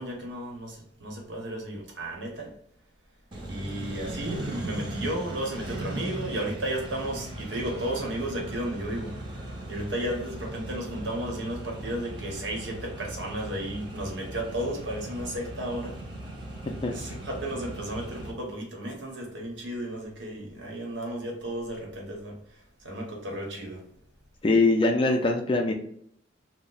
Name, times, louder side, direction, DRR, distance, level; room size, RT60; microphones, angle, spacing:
voice 1, 0.0-2.5 3.4-9.1 9.7-16.0 16.9-23.8, right 1 dB, 75° right, -1 dB, 0.9 m, -34 dB
Accelerating revving vroom, 3.3-18.3, right 1 dB, 25° right, 0.6 m, -38 dB
voice 2, 24.4-25.7, left 2 dB, 25° left, 3 dB, 0.3 m, -22 dB
2.7 x 2.1 x 3.8 m, 0.67 s
head